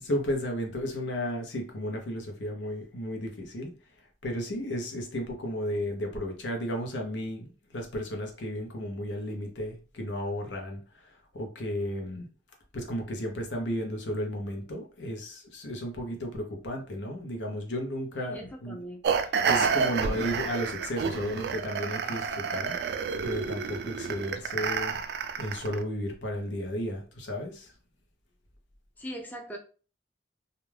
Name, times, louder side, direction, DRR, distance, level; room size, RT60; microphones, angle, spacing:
voice 1, 0.0-3.7 4.0-12.3 12.7-18.8 19.5-22.8 23.2-24.9 25.4-27.7, equal, 85° left, 2 dB, 0.8 m, -34 dB
voice 2, 18.2-19.0 29.0-29.6, equal, 10° left, 1 dB, 0.4 m, -40 dB
sound 1, 19.0-25.8, right 6 dB, 60° right, 0.3 m, -29 dB
2.5 x 2.2 x 3.2 m, 0.37 s
head